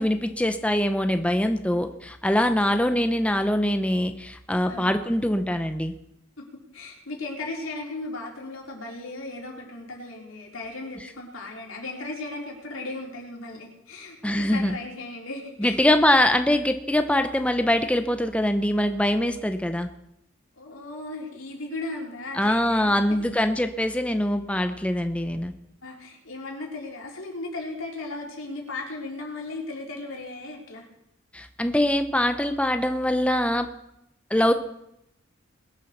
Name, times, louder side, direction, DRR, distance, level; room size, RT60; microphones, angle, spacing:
voice 1, 0.0-5.9 14.2-14.7 15.6-19.9 22.3-25.5 31.3-33.7 34.3-34.5, left 1 dB, 5° left, 8 dB, 0.7 m, -23 dB
voice 2, 6.7-15.8 20.6-23.1 25.8-30.9, left 2 dB, 85° left, -1 dB, 3.8 m, -36 dB
21.0 x 7.4 x 6.6 m, 0.81 s
head